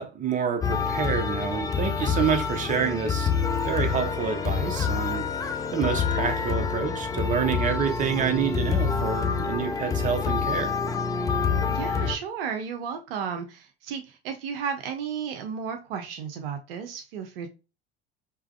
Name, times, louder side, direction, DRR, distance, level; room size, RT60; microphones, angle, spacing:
voice 1, 0.0-3.3 3.6-5.2 5.7-10.7, right 7 dB, 25° right, 0.8 m, -28 dB
sound 1, 0.6-12.2, left 6 dB, 10° left, 0.4 m, -27 dB
voice 2, 11.7-17.5, right 7 dB, 60° right, 0.7 m, -33 dB
4.8 x 3.0 x 2.3 m
figure-of-eight pair, 65°, 33 cm